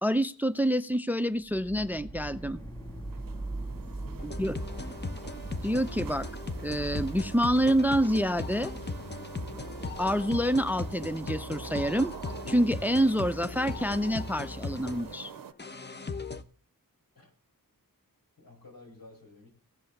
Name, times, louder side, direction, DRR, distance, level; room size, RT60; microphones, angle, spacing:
voice 1, 0.0-2.6 4.2-4.6 5.6-6.3 6.6-8.7 10.0-12.1 12.5-15.3, equal, 5° right, 14 dB, 0.5 m, -27 dB
sound 1, 1.5-11.4, right 2 dB, 10° left, 1.5 m, -42 dB
sound 2, 2.3-15.5, right 8 dB, 70° right, 0.6 m, -47 dB
voice 2, 3.1-3.6 3.8-4.4 17.1-17.3 18.4-19.5, left 2 dB, 80° left, 1 dB, 4.7 m, -53 dB
sound 3, 4.2-16.4, left 3 dB, 30° left, 1.0 m, -38 dB
16.5 x 5.5 x 6.5 m, 0.41 s
wide cardioid pair, 55°, 35 cm